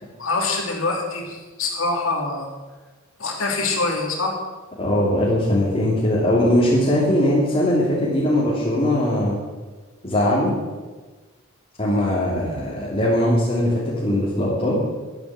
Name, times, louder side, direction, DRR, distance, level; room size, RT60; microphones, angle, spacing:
voice 1, 0.0-2.5 3.2-4.3, left 3 dB, 70° left, 0 dB, 3.2 m, -25 dB
voice 2, 4.8-9.4 10.0-10.5 11.8-14.8, left 1 dB, 30° left, -7 dB, 3.2 m, -20 dB
12.0 x 9.8 x 7.7 m, 1.3 s
head